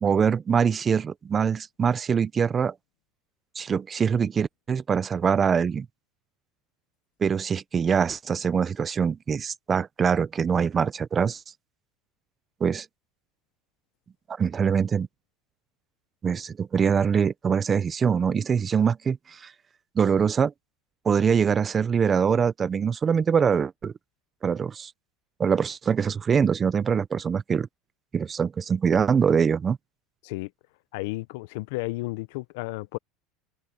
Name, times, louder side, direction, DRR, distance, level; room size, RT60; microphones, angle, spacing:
voice 1, 0.0-2.7 3.6-5.9 7.2-11.4 12.6-12.9 14.4-15.1 16.2-19.5 20.0-20.5 21.0-23.9 24.4-24.9 25.4-27.7 28.1-29.8, right 6 dB, 20° right, 0.5 m, -23 dB
voice 2, 30.9-33.0, left 21 dB, 70° left, 0.6 m, -33 dB
open air
supercardioid pair, 155°, 0 cm